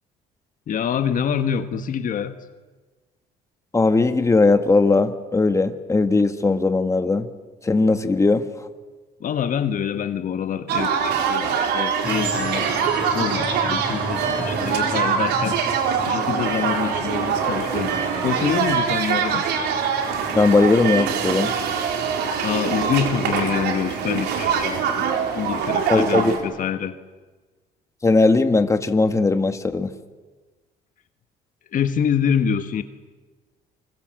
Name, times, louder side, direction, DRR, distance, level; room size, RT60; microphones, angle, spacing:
voice 1, 0.7-2.4 9.2-12.7 13.1-15.6 16.1-18.0 18.2-19.5 22.4-25.0 25.3-27.0 31.7-32.8, left 8 dB, 55° left, 9 dB, 1.5 m, -26 dB
voice 2, 3.7-7.3 7.6-8.5 20.3-21.6 25.9-26.4 28.0-29.9, left 3 dB, 15° left, 8 dB, 1.8 m, -18 dB
sound 1, 10.7-26.4, right 7 dB, 80° right, 4.3 m, -23 dB
sound 2, 12.0-25.3, equal, 5° right, 6.0 m, -37 dB
29.0 x 25.5 x 7.8 m, 1.3 s
cardioid pair, 110°, 17 cm